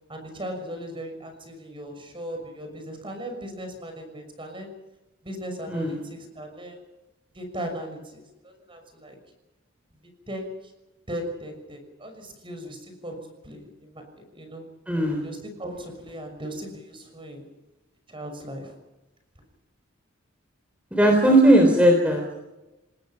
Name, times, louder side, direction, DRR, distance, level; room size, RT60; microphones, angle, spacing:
voice 1, 0.1-4.7 5.2-6.8 7.3-9.2 10.3-10.6 11.1-14.7 15.2-17.5 18.1-18.7, equal, 25° right, 6 dB, 6.2 m, -37 dB
voice 2, 14.9-15.2 20.9-22.2, right 1 dB, 5° right, 2 dB, 3.7 m, -17 dB
28.0 x 20.0 x 5.9 m, 1.0 s
head